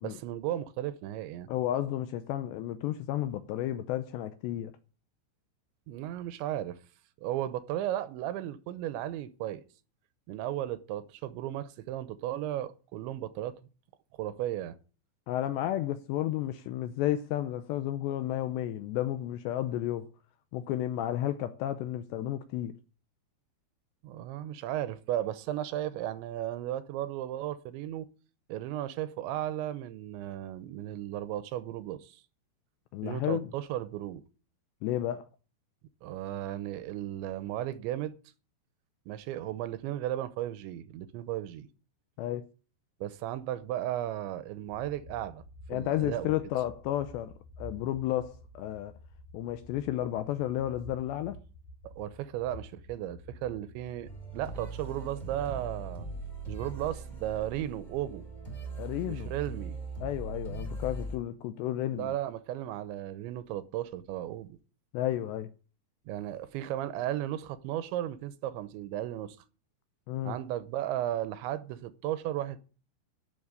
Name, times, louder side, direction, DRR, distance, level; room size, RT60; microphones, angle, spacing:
voice 1, 0.0-1.5 5.9-6.8 7.2-9.6 10.3-13.6 14.2-14.8 24.0-28.1 28.5-32.2 33.0-34.2 36.0-38.1 39.1-41.7 43.0-45.4 45.7-46.3 51.8-56.1 56.5-58.2 59.1-59.7 61.9-64.5 66.1-69.4 70.2-72.6, right 13 dB, 80° right, 2.9 m, -35 dB
voice 2, 1.5-4.7 15.3-20.1 20.5-22.7 32.9-33.5 34.8-35.3 42.2-42.5 45.7-48.9 49.3-51.4 58.8-59.3 60.0-62.2 64.9-65.5 70.1-70.4, left 13 dB, 80° left, 2.6 m, -32 dB
sound 1, 44.7-54.4, left 1 dB, 45° left, 3.8 m, -50 dB
sound 2, 54.0-61.2, right 3 dB, 10° left, 2.3 m, -40 dB
12.5 x 7.0 x 9.6 m
omnidirectional pair, 5.7 m